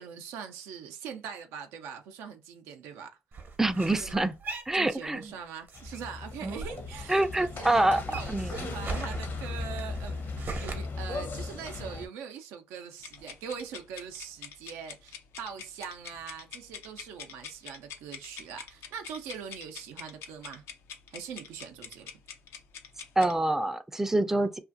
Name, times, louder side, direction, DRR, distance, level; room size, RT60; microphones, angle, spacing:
voice 1, 0.0-3.2 4.0-4.3 4.7-20.6 21.1-22.1, right 7 dB, 90° right, 0.4 m, -42 dB
sound 1, 3.3-5.4 5.7-7.5 7.8-10.7, right 4 dB, 55° right, 0.8 m, -40 dB
voice 2, 3.6-4.3 4.7-5.2 7.1-8.7 23.2-24.6, right 2 dB, 10° right, 0.4 m, -26 dB
sound 2, 5.7-12.1, left 3 dB, 60° left, 0.8 m, -37 dB
sound 3, 13.0-23.4, left 7 dB, 80° left, 0.4 m, -45 dB
2.5 x 2.4 x 2.5 m
supercardioid pair, 60°, 4 cm